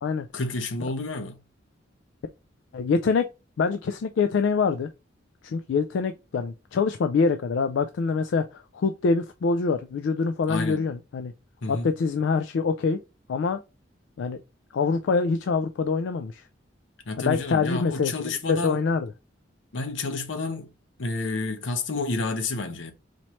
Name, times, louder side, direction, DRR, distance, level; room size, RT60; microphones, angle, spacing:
voice 1, 0.3-1.4 10.5-10.9 11.6-11.9 17.1-18.8 19.7-20.7 21.0-22.9, left 3 dB, 90° left, 0.8 m, -30 dB
voice 2, 2.7-3.3 3.6-4.9 5.4-11.3 11.7-13.0 13.3-13.6 14.2-14.4 14.7-16.4 17.2-19.1, left 4 dB, 70° left, 0.3 m, -25 dB
4.2 x 3.0 x 3.1 m
head